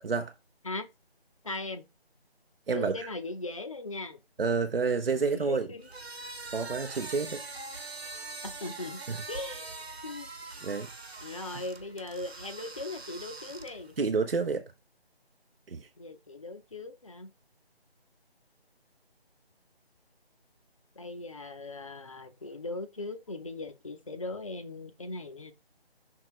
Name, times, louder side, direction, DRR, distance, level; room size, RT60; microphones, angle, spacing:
voice 1, 1.4-1.8 2.7-4.2 5.1-5.9 8.4-9.0 9.3-10.6 11.2-14.0 16.0-17.3 21.0-25.5, left 2 dB, 30° left, 0.6 m, -39 dB
voice 2, 2.7-3.1 4.4-5.7 6.5-7.4 9.1-9.2 10.6-10.9 14.0-14.7 15.7-15.9, right 4 dB, 65° right, 0.8 m, -29 dB
sound 1, 5.8-14.0, right 3 dB, 80° right, 1.3 m, -43 dB
6.1 x 3.6 x 4.5 m
figure-of-eight pair, 160°, 31 cm